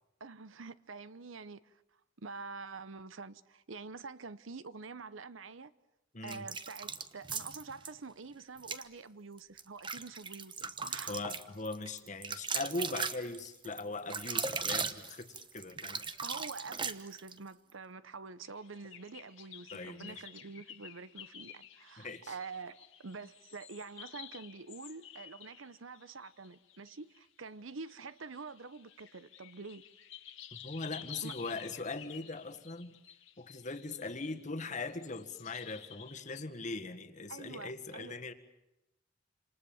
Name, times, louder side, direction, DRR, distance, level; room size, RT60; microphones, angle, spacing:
voice 1, 0.2-1.8 2.2-5.7 6.2-11.2 13.6-13.7 16.2-29.8 31.2-31.4 37.3-38.2, right 4 dB, 80° right, 0.9 m, -46 dB
voice 2, 6.1-6.5 11.1-16.1 19.7-20.2 22.0-22.3 30.5-33.0 33.4-38.3, left 3 dB, 40° left, 1.7 m, -40 dB
sound 1, 6.3-7.9 8.6-8.9 9.4-17.4, right 5 dB, 25° right, 1.1 m, -38 dB
sound 2, 18.4-27.2 27.8-36.4, left 10 dB, 75° left, 1.9 m, -52 dB
28.0 x 27.5 x 7.2 m
head